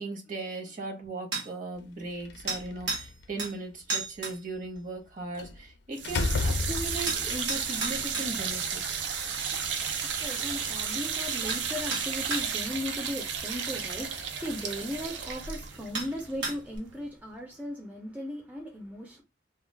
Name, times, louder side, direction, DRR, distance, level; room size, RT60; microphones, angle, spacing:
voice 1, 0.0-8.8, right 2 dB, 45° right, 0.9 m, -38 dB
sound 1, 1.3-1.5 2.5-3.1 3.4-3.5 3.9-4.4 7.1-8.3 10.9-11.0 11.5-11.6 11.9-12.5 14.1-14.2 15.2-15.3 15.9-16.1 16.4-16.8, right 3 dB, 70° right, 1.0 m, -33 dB
Slam, 2.2-3.2 5.4-5.6 6.0-7.3, left 3 dB, 65° left, 0.4 m, -30 dB
sound 2, 5.9-17.0, right 6 dB, 85° right, 0.6 m, -33 dB
voice 2, 10.0-19.2, left 1 dB, 10° right, 0.5 m, -37 dB
2.3 x 2.3 x 3.2 m
head